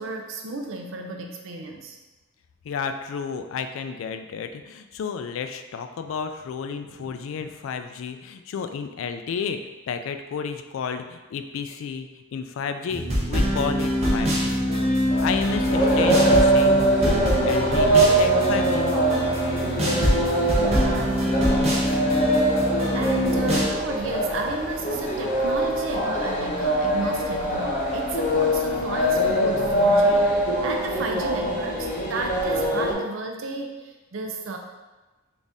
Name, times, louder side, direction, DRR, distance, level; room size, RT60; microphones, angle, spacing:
voice 1, 0.0-2.0 6.8-7.4 20.6-34.6, right 3 dB, 65° right, 3 dB, 0.5 m, -33 dB
voice 2, 2.6-9.6 9.9-18.9, left 6 dB, 75° left, 8 dB, 0.3 m, -32 dB
sound 1, 12.9-23.7, equal, 30° right, 0.8 m, -24 dB
sound 2, 15.1-32.9, right 1 dB, 40° left, 0.7 m, -23 dB
4.0 x 2.5 x 3.5 m, 1.2 s
head